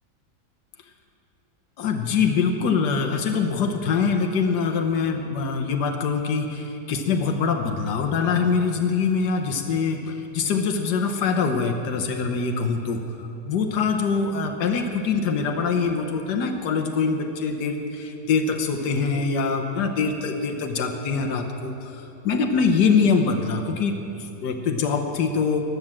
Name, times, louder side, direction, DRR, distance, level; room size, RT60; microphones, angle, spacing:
voice 1, 1.8-13.0 13.4-25.6, left 5 dB, 80° left, 4 dB, 1.6 m, -24 dB
16.0 x 11.0 x 7.4 m, 2.9 s
omnidirectional pair, 1.8 m